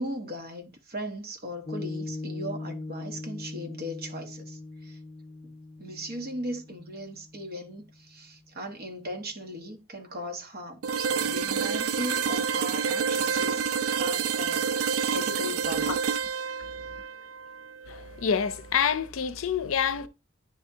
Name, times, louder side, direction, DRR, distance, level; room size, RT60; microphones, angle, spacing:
voice 1, 0.0-5.0 5.8-13.6 14.0-15.9, equal, 50° right, 1.2 m, -38 dB
Piano, 1.7-8.3, left 2 dB, 20° left, 0.3 m, -40 dB
sound 1, 10.8-18.7, right 6 dB, 80° right, 0.4 m, -28 dB
voice 2, 17.9-20.1, left 7 dB, 70° left, 0.5 m, -27 dB
9.8 x 3.5 x 2.7 m
head